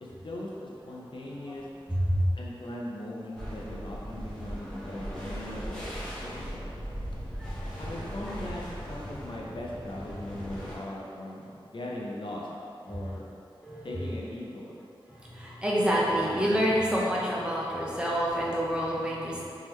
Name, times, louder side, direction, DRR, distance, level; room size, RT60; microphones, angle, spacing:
voice 1, 0.0-1.6 2.3-6.6 7.8-12.5 12.8-13.2 13.8-14.8, left 1 dB, 60° left, -4 dB, 0.5 m, -39 dB
sound 1, 3.4-10.8, equal, 10° left, 1.0 m, -38 dB
voice 2, 15.2-19.5, equal, 10° right, -6 dB, 0.7 m, -27 dB
3.7 x 3.1 x 3.1 m, 2.5 s
wide cardioid pair, 85°, 9 cm